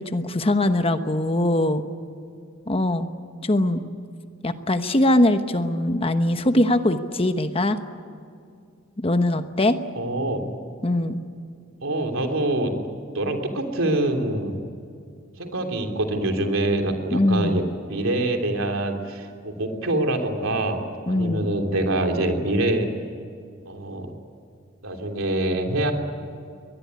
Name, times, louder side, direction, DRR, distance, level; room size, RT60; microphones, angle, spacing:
voice 1, 0.0-1.8 2.7-3.1 3.4-3.8 4.4-7.8 9.0-9.8 10.8-11.2 17.1-17.6 21.1-21.5, left 1 dB, 25° left, 9 dB, 1.0 m, -21 dB
voice 2, 9.9-10.4 11.8-12.7 13.1-14.6 15.4-17.6 17.9-22.9 23.6-24.1 24.8-25.9, right 1 dB, 75° right, 4 dB, 3.2 m, -25 dB
23.0 x 19.5 x 9.6 m, 2.4 s
head